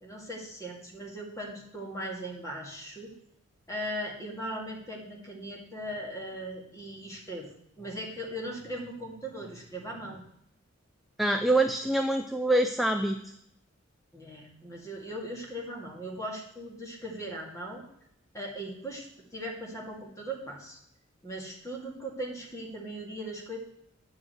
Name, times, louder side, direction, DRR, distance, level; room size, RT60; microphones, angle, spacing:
voice 1, 0.0-3.1 3.7-7.5 7.8-10.2 14.1-17.8 18.3-20.8 21.2-23.6, right 1 dB, 15° left, -1 dB, 2.2 m, -39 dB
voice 2, 11.2-13.2, right 1 dB, ahead, 5 dB, 0.4 m, -25 dB
9.5 x 5.0 x 7.7 m, 0.76 s
head